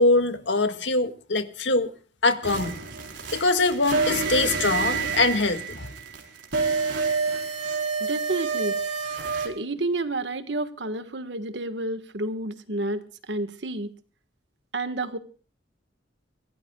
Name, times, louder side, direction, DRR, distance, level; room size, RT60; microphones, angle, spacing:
voice 1, 0.0-1.9 2.2-2.8 3.3-5.9, left 2 dB, 75° left, 1.9 m, -23 dB
sound 1, 2.4-9.5, right 4 dB, 85° right, 4.4 m, -28 dB
voice 2, 8.0-8.8 9.4-13.9 14.7-15.2, right 2 dB, 65° right, 1.5 m, -30 dB
25.0 x 17.5 x 2.3 m
head